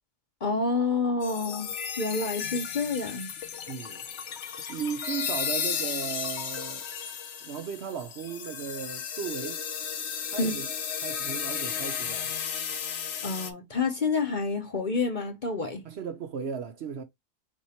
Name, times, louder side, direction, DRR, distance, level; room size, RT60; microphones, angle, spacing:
voice 1, 0.4-1.7 2.0-3.3 10.4-10.5 13.2-15.8, left 4 dB, 40° left, 0.8 m, -28 dB
sound 1, 1.2-13.5, left 7 dB, 65° left, 1.0 m, -34 dB
voice 2, 3.7-4.0 4.7-6.8 7.4-9.6 10.3-10.7 11.0-12.3 15.8-17.0, right 7 dB, 60° right, 0.8 m, -36 dB
4.4 x 3.5 x 2.9 m
omnidirectional pair, 1.4 m